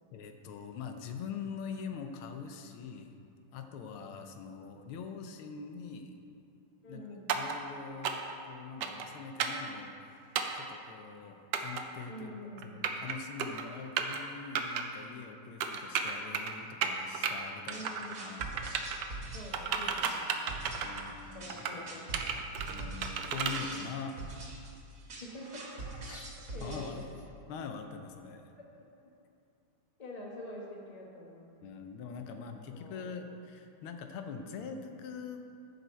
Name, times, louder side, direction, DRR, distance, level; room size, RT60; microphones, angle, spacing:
voice 1, 0.1-3.2 3.5-6.1 6.9-7.0 7.3-12.4 12.6-17.8 18.2-18.5 20.8-21.9 22.7-24.4 26.1-26.2 26.6-27.0 27.5-28.4 31.6-35.4, left 5 dB, 90° left, 6 dB, 1.6 m, -43 dB
voice 2, 6.8-7.3 12.1-12.7 17.7-18.4 19.3-21.0 21.3-22.5 25.2-25.8 26.5-27.0 30.0-31.5 32.7-33.0, left 1 dB, 25° left, -2 dB, 1.0 m, -46 dB
sound 1, 7.3-7.6 8.0-8.3 8.8-9.1 9.4-9.6 10.4-10.6 11.5-11.8 12.6-13.1 13.4-13.6 14.0-14.2 14.6-14.8 15.6-16.5 16.8-17.3 17.7-18.2 18.4-19.1 19.5-21.1 21.5-21.8 22.1-23.6, right 7 dB, 70° right, 1.1 m, -33 dB
sound 2, 17.7-27.2, right 2 dB, 45° right, 1.7 m, -44 dB
14.0 x 5.3 x 4.4 m, 2.5 s
omnidirectional pair, 2.3 m